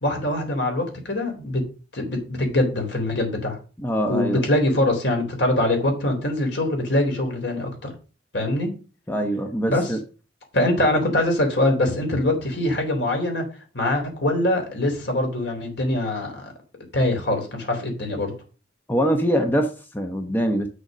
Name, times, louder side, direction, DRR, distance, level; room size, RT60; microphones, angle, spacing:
voice 1, 0.0-1.6 1.9-3.6 4.1-7.9 8.3-8.7 9.7-9.9 10.5-13.5 13.7-16.5 16.9-18.3, left 1 dB, 65° left, 3 dB, 3.5 m, -23 dB
voice 2, 3.8-4.4 9.1-10.0 18.9-20.7, equal, 10° left, 4 dB, 0.9 m, -23 dB
8.0 x 6.6 x 6.2 m, 0.36 s
head